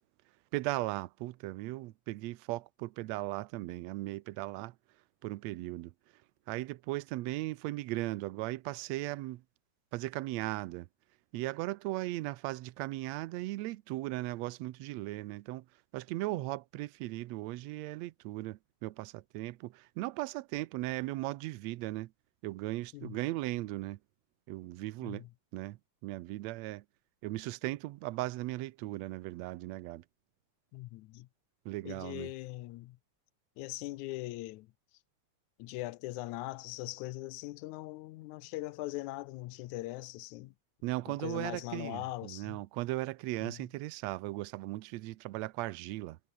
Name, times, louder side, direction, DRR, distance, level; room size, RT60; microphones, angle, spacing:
voice 1, 0.5-4.7 5.2-5.9 6.5-9.4 9.9-10.9 11.3-15.7 15.9-22.1 22.4-24.0 24.5-25.2 25.5-26.8 27.2-30.0 31.7-32.3 40.8-46.2, right 18 dB, 75° right, 1.8 m, -37 dB
voice 2, 30.7-31.3 31.8-33.0 33.6-34.7 35.6-40.5 41.1-42.6 43.4-43.7, left 18 dB, 85° left, 2.1 m, -41 dB
omnidirectional pair, 3.4 m